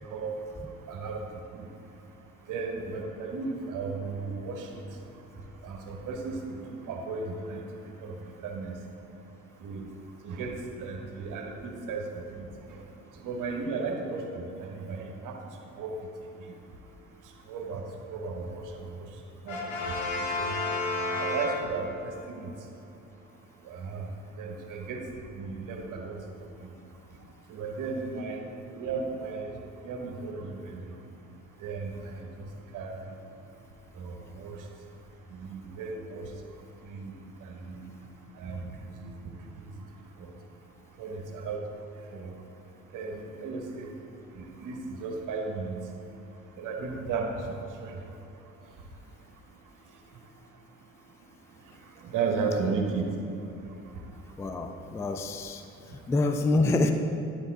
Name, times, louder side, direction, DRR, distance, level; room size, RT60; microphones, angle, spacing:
voice 1, 0.1-0.4 0.9-1.3 1.5-1.7 2.5-4.7 5.6-8.8 9.6-9.9 10.2-12.5 13.2-15.4 15.7-15.9 16.4-16.5 17.5-17.8 18.1-18.7 19.0-19.1 19.4-19.6 20.1-20.6 21.1-22.5 23.6-25.0 25.3-26.2 26.6-26.7 27.5-28.4 28.7-29.5 29.8-30.9 31.6-32.9 34.0-34.6 35.3-36.3 36.8-37.1 37.4-37.8 38.4-39.4 41.0-41.6 42.1-42.3 42.9-43.9 44.3-45.8 46.6-47.6 47.8-48.0 52.0-53.1, right 4 dB, 45° right, 2 dB, 1.1 m, -35 dB
Brass instrument, 19.5-22.1, left 2 dB, 70° left, 1.2 m, -31 dB
voice 2, 54.4-55.6 56.1-56.9, left 2 dB, 5° left, 6 dB, 0.3 m, -26 dB
11.0 x 4.8 x 3.8 m, 2.7 s
figure-of-eight pair, 45°, 42 cm